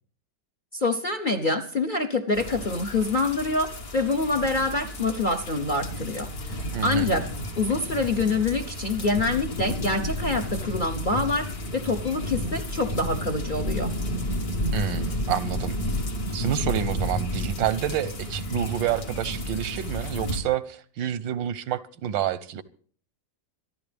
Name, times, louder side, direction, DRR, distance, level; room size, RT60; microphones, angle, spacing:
voice 1, 0.7-7.3 7.6-13.9, left 3 dB, 40° left, 0.8 m, -26 dB
sound 1, 2.3-20.4, equal, 55° left, 2.2 m, -31 dB
voice 2, 6.7-7.1 14.7-15.8 16.3-22.6, right 10 dB, 85° right, 1.6 m, -28 dB
27.0 x 11.5 x 3.4 m
omnidirectional pair, 2.0 m